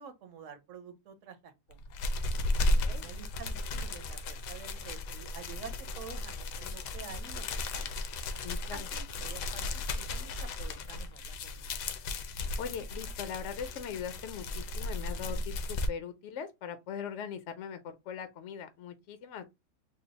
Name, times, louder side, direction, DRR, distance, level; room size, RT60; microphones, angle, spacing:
voice 1, 0.0-1.8 2.9-7.4 7.7-7.9 8.7-11.8, right 6 dB, 60° right, 1.0 m, -49 dB
sound 1, 1.7-15.9, left 2 dB, 85° left, 1.2 m, -35 dB
voice 2, 2.6-3.1 8.4-8.9 12.6-19.4, left 7 dB, 65° left, 0.7 m, -41 dB
3.9 x 2.0 x 4.0 m
omnidirectional pair, 1.8 m